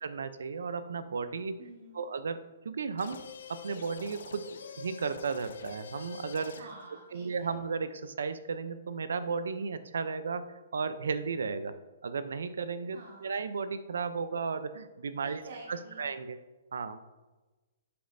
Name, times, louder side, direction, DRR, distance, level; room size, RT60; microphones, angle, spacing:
voice 1, 0.0-1.6 1.9-3.2 3.5-4.5 4.8-6.6 7.1-10.5 10.7-11.7 12.0-15.4 15.7-16.4 16.7-17.0, right 5 dB, 85° right, 12 dB, 0.5 m, -34 dB
voice 2, 1.6-1.9 6.6-7.5 12.9-13.3 15.2-16.1, right 3 dB, 70° right, -1 dB, 1.2 m, -49 dB
sound 1, 3.0-6.9, left 6 dB, 75° left, 0.7 m, -45 dB
11.0 x 5.2 x 2.6 m, 1.2 s
hypercardioid pair, 150°, 0 cm